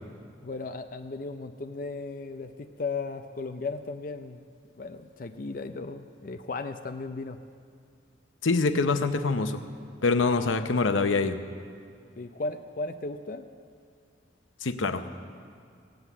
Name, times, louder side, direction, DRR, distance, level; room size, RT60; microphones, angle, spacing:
voice 1, 0.4-4.5 4.8-7.4 12.2-13.5, left 3 dB, 45° left, 6 dB, 0.5 m, -36 dB
voice 2, 8.4-9.6 10.0-11.4 14.6-15.0, left 3 dB, 90° left, 9 dB, 0.8 m, -25 dB
17.5 x 8.0 x 8.2 m, 2.3 s
head